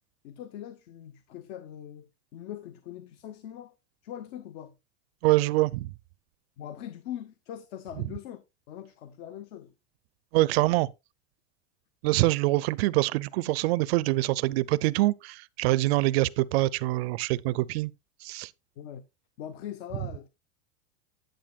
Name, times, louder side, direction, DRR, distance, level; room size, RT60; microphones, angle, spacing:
voice 1, 0.2-3.7 4.0-4.7 6.6-8.4 8.7-9.7 18.8-19.0 19.4-20.3, left 10 dB, 55° left, 0.9 m, -41 dB
voice 2, 5.2-5.9 10.3-10.9 12.0-17.9 18.2-18.5, right 19 dB, 60° right, 0.5 m, -25 dB
10.0 x 8.8 x 2.3 m
supercardioid pair, 150°, 36 cm